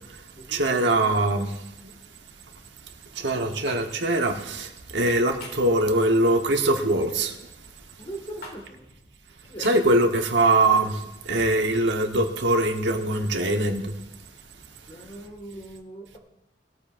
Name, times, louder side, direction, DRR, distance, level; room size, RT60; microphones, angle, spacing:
voice 1, 0.5-1.6 3.1-7.3 9.6-13.9, right 2 dB, 70° right, 1.2 m, -22 dB
sound 1, 3.7-3.8 5.4-5.7 7.0-7.3 8.4-8.6 9.6-9.8, left 2 dB, 55° left, 2.5 m, -40 dB
voice 2, 8.0-8.9 9.5-9.7 14.9-16.2, right 1 dB, 30° left, 1.8 m, -40 dB
19.5 x 13.5 x 2.6 m
head